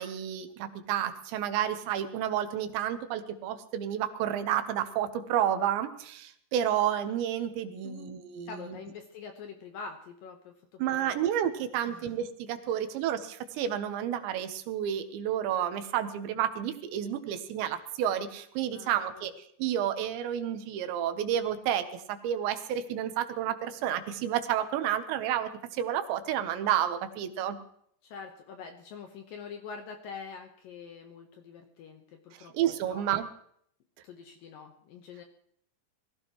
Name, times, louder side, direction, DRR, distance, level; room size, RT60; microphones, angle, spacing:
voice 1, 0.0-8.8 10.8-27.6 32.4-33.3, right 10 dB, 85° right, 9 dB, 3.3 m, -30 dB
voice 2, 7.8-8.2 8.5-11.2 11.9-12.1 18.7-19.3 28.0-33.0 34.0-35.2, left 5 dB, 70° left, 5 dB, 2.3 m, -45 dB
22.0 x 15.0 x 3.1 m, 0.65 s
omnidirectional pair, 5.1 m